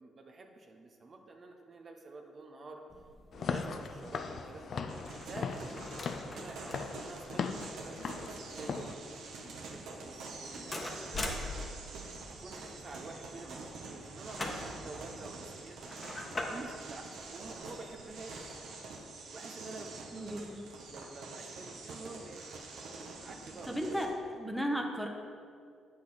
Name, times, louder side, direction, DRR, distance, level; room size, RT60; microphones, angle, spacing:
voice 1, 0.0-2.8 3.3-4.8 5.3-11.4 11.9-12.1 12.4-15.8 16.5-18.6 19.3-19.9 20.3-22.5 23.2-24.1 24.5-24.6, right 3 dB, 40° right, 3 dB, 0.8 m, -49 dB
sound 1, 2.9-18.3, left 2 dB, 30° left, 1.1 m, -45 dB
Walk footsteps / Siren, 3.3-8.9, left 5 dB, 55° left, 0.5 m, -39 dB
sound 2, 4.9-24.1, right 3 dB, 75° right, 1.1 m, -46 dB
voice 2, 20.1-20.6 23.7-24.1 24.4-25.1, equal, ahead, 2 dB, 0.9 m, -34 dB
8.2 x 6.6 x 4.2 m, 2.3 s
cardioid pair, 90°, 0 cm